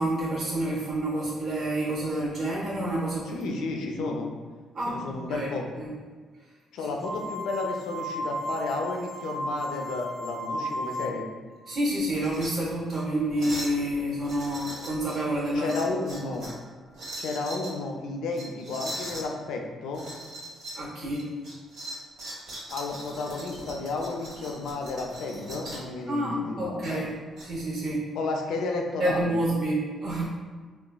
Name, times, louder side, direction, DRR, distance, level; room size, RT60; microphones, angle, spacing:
voice 1, 0.0-3.4 3.9-4.1 4.7-5.5 5.8-5.9 11.7-15.8 16.1-16.2 20.7-21.3 26.1-27.1 27.4-28.0 29.0-30.3, right 1 dB, 50° right, -6 dB, 0.8 m, -28 dB
voice 2, 3.3-4.3 4.9-5.7 6.7-11.3 15.5-16.5 17.2-20.0 22.7-27.1 28.2-29.3, left 3 dB, 85° left, 1 dB, 0.4 m, -32 dB
sound 1, 7.0-11.4, equal, 10° right, 0.6 m, -34 dB
sound 2, 12.1-12.5 12.9-13.0 13.4-13.8 14.2-15.2 15.6-16.6 16.9-17.7 18.3-19.3 19.9-20.8 21.1-25.9 26.8-27.4, right 1 dB, 75° right, 1.2 m, -40 dB
3.8 x 2.2 x 2.2 m, 1.5 s
cardioid pair, 90°, 0 cm